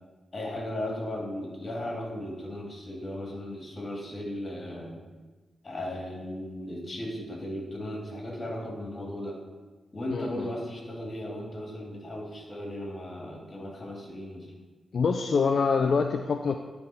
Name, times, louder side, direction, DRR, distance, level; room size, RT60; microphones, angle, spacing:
voice 1, 0.3-4.9 5.6-9.4 9.9-14.5, left 1 dB, 40° left, -1 dB, 2.3 m, -36 dB
voice 2, 10.1-10.5 14.9-16.6, left 5 dB, 60° left, 6 dB, 0.4 m, -25 dB
9.8 x 3.6 x 5.7 m, 1.2 s
cardioid pair, 70°, 0 cm